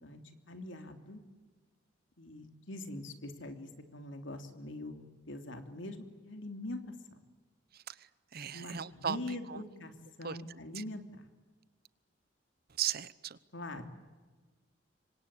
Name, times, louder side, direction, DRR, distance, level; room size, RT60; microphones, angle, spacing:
voice 1, 0.5-1.2 2.2-7.2 8.5-9.9 10.2-11.3 13.5-13.8, left 1 dB, 85° left, 6 dB, 3.2 m, -43 dB
voice 2, 7.7-9.6 10.2-10.4 10.7-10.8 12.8-13.4, right 9 dB, 55° right, 18 dB, 0.9 m, -37 dB
27.0 x 24.5 x 8.6 m, 1.3 s
head